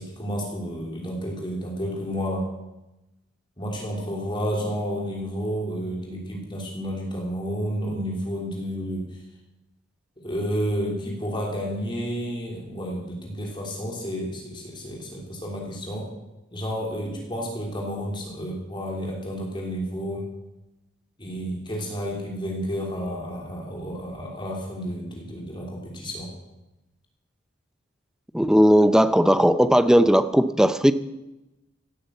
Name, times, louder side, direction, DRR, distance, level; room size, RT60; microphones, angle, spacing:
voice 1, 0.0-2.5 3.6-9.2 10.2-16.1 16.5-20.3 21.2-26.3, equal, 25° left, -1 dB, 3.2 m, -31 dB
voice 2, 28.3-30.9, equal, 5° right, 12 dB, 0.6 m, -17 dB
16.5 x 9.5 x 7.9 m, 0.97 s
head